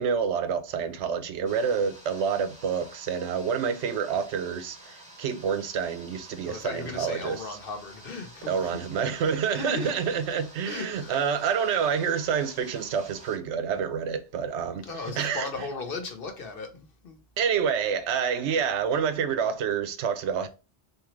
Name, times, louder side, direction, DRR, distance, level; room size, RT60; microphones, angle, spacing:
voice 1, 0.0-7.6 8.5-15.7 17.4-20.5, right 7 dB, 90° right, 0.9 m, -28 dB
sound 1, 1.4-13.4, right 1 dB, 5° right, 0.9 m, -50 dB
voice 2, 6.4-8.8 9.5-10.0 10.6-11.1 14.8-17.2, left 4 dB, 60° left, 1.0 m, -36 dB
3.6 x 2.8 x 3.0 m
omnidirectional pair, 1.1 m